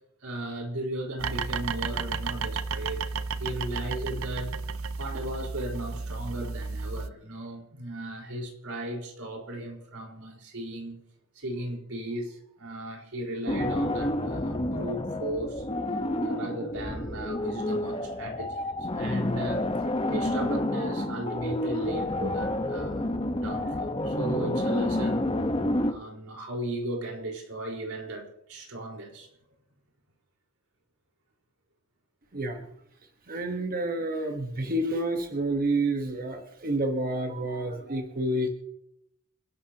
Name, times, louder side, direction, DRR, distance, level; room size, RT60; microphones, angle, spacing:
voice 1, 0.2-3.0 3.4-4.6 5.0-11.0 11.3-15.6 16.2-19.7 20.1-25.3 25.8-29.3, right 1 dB, 90° right, 0 dB, 4.5 m, -36 dB
sound 1, 1.2-7.1, right 4 dB, 70° right, 0.7 m, -33 dB
sound 2, 13.5-25.9, left 1 dB, 25° left, 1.1 m, -29 dB
voice 2, 32.3-32.7 33.3-38.5, right 1 dB, 40° right, 4 dB, 1.3 m, -29 dB
28.0 x 11.5 x 2.9 m, 0.78 s
head